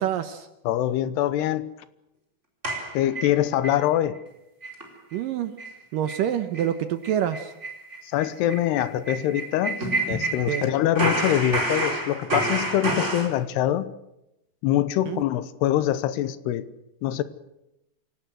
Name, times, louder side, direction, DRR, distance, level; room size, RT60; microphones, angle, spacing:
voice 1, 0.0-0.5 5.1-5.5 5.9-7.5 10.5-10.7 15.1-15.2, right 10 dB, 70° right, 10 dB, 2.2 m, -26 dB
voice 2, 0.6-1.7 2.9-4.2 8.0-9.8 10.1-13.9 14.6-16.7 17.0-17.2, left 12 dB, 80° left, 14 dB, 3.0 m, -24 dB
sound 1, 2.6-3.8 4.2-4.3 4.6-4.8 5.1-5.2 5.6-5.8 6.1-6.3 6.5-6.7 7.0-10.7 11.0-13.3, right 2 dB, 15° right, 4.3 m, -28 dB
27.0 x 18.0 x 7.8 m, 0.88 s
omnidirectional pair, 4.8 m